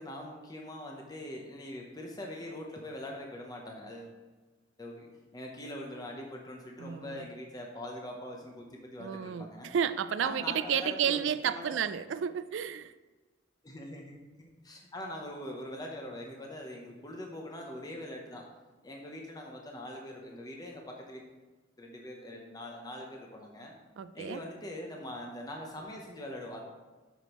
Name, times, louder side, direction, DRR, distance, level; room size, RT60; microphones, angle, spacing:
voice 1, 0.0-4.1 4.8-9.8 10.2-11.8 13.6-18.5 18.8-21.3 21.8-23.8 24.1-26.6, left 1 dB, 20° left, 0.8 m, -43 dB
voice 2, 6.8-7.2 9.0-12.9 24.0-24.4, right 8 dB, 70° right, 0.3 m, -31 dB
8.0 x 6.2 x 3.0 m
head